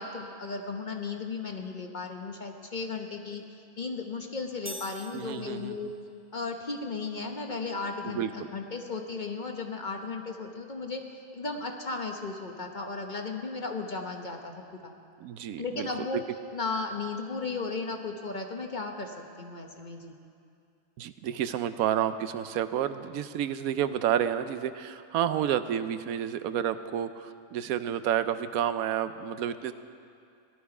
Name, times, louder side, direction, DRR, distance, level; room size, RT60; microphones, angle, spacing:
voice 1, 0.0-3.4 3.8-5.9 6.3-11.0 11.3-14.9 15.6-16.2 16.5-20.1, left 4 dB, 40° left, 3 dB, 0.9 m, -35 dB
sound 1, 4.7-6.0, equal, 10° right, 0.8 m, -44 dB
voice 2, 5.1-5.9 8.0-8.3 15.2-16.2 21.0-29.7, right 10 dB, 85° right, 11 dB, 1.1 m, -30 dB
18.5 x 11.5 x 4.8 m, 2.4 s
omnidirectional pair, 1.5 m